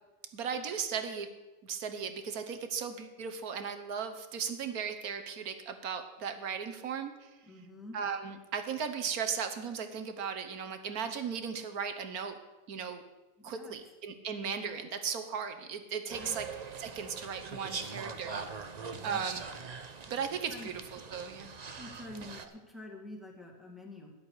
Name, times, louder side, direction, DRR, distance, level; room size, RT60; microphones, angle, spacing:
voice 1, 0.3-1.3 1.6-7.3 7.9-12.4 12.7-13.0 13.4-16.5 16.8-18.7 19.0-19.4 20.1-21.5 22.4-22.5, right 6 dB, 60° right, 8 dB, 1.4 m, -37 dB
voice 2, 7.5-8.0 13.4-13.8 16.1-16.4 19.0-19.3 20.5-20.7 21.8-24.1, left 1 dB, ahead, 0 dB, 1.9 m, -47 dB
sound 1, 16.1-22.5, right 5 dB, 80° right, 0.3 m, -42 dB
13.0 x 10.5 x 4.8 m, 1.1 s
omnidirectional pair, 1.9 m